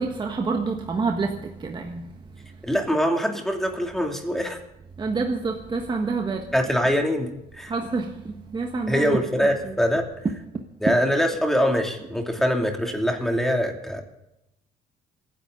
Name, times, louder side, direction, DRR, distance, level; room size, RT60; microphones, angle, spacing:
voice 1, 0.0-2.1 5.0-6.6 7.7-9.8, right 4 dB, 25° right, 1.4 m, -28 dB
voice 2, 2.6-4.6 6.5-7.7 8.9-10.0 10.8-14.0, equal, ahead, 2.8 m, -23 dB
27.0 x 10.5 x 3.9 m
cardioid pair, 110°, 17 cm